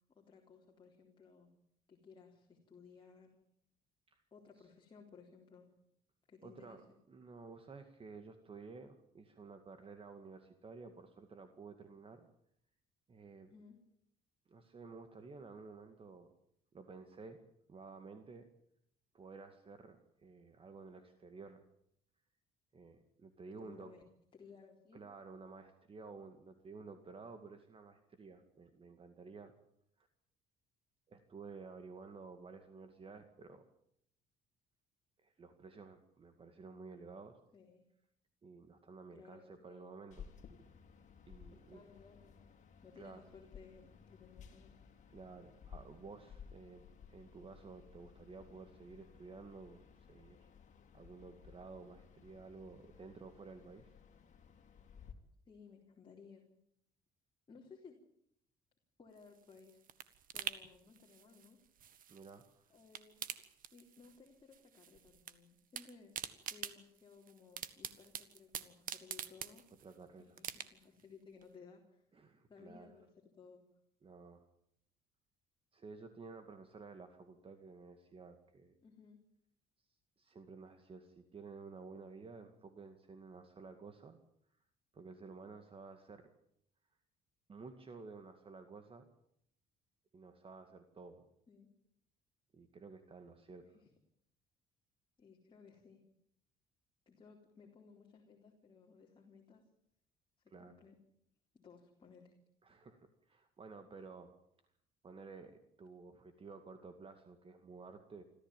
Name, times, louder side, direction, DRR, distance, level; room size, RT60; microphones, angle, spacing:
voice 1, 0.1-1.5 1.9-3.4 4.3-5.7 6.3-6.8 13.5-13.8 23.6-24.0 24.3-25.0 37.5-37.8 39.1-39.9 41.5-42.4 42.8-44.7 55.5-56.5 57.5-58.0 59.0-59.8 60.3-61.6 62.7-63.2 63.5-66.1 66.5-69.6 70.2-72.0 72.5-73.6 78.8-79.2 91.5-91.7 93.7-93.9 95.2-96.0 97.1-99.6 100.4-101.0 101.5-102.3, left 5 dB, 30° left, 0 dB, 3.9 m, -59 dB
voice 2, 6.4-12.3 13.1-13.5 14.5-16.3 16.7-17.4 17.7-18.5 19.1-21.6 22.7-23.9 24.9-29.5 30.0-30.1 31.1-33.6 35.2-37.4 38.4-40.3 41.3-41.8 43.0-43.3 45.1-46.8 47.1-49.8 50.1-50.5 50.9-53.9 62.1-62.7 69.8-70.4 72.1-72.9 74.0-74.5 75.7-78.7 80.2-84.2 84.9-86.3 87.5-89.1 90.1-91.3 92.5-93.6 100.5-100.8 102.6-104.3 105.0-108.2, right 4 dB, 35° right, 8 dB, 2.2 m, -53 dB
sound 1, 40.1-55.1, left 7 dB, 45° left, 3.4 m, -58 dB
sound 2, 59.2-62.5 62.8-64.3 64.5-65.3 65.6-69.9 70.4-71.0 71.4-71.5, right 9 dB, 55° right, 1.7 m, -46 dB
26.0 x 14.5 x 9.2 m, 0.72 s
cardioid pair, 110°, 17 cm